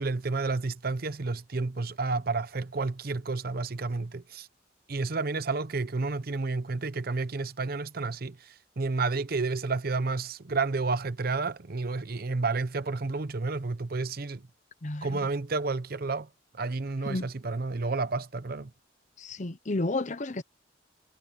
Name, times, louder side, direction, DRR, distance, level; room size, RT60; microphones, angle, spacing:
voice 1, 0.0-4.5 4.9-14.4 15.0-16.3 16.5-18.7, right 3 dB, 55° right, 0.7 m, -31 dB
voice 2, 14.8-15.3 17.0-17.3 19.2-20.4, left 2 dB, 40° left, 0.9 m, -32 dB
head